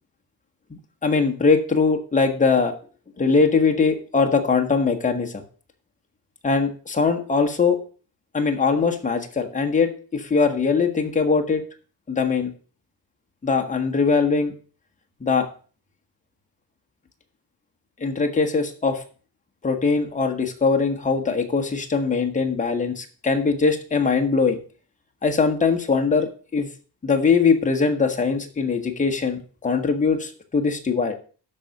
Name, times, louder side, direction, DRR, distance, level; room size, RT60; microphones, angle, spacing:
voice 1, 1.0-2.7 3.2-5.4 6.4-7.8 8.3-11.6 12.1-12.5 13.4-14.5 15.2-15.5 18.0-19.0 19.6-24.6 25.2-26.7 27.0-31.1, left 4 dB, 20° left, 3 dB, 1.3 m, -21 dB
12.5 x 4.2 x 6.4 m, 0.39 s
wide cardioid pair, 170°, 41 cm